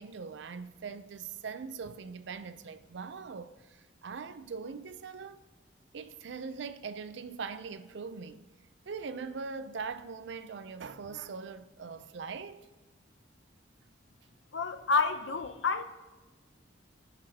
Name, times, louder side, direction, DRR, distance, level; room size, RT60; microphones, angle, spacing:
voice 1, 0.0-5.4 5.9-8.4 8.9-12.7, right 5 dB, 65° right, 0.5 m, -41 dB
voice 2, 14.5-15.8, left 4 dB, 75° left, 0.7 m, -29 dB
18.0 x 6.0 x 2.8 m
head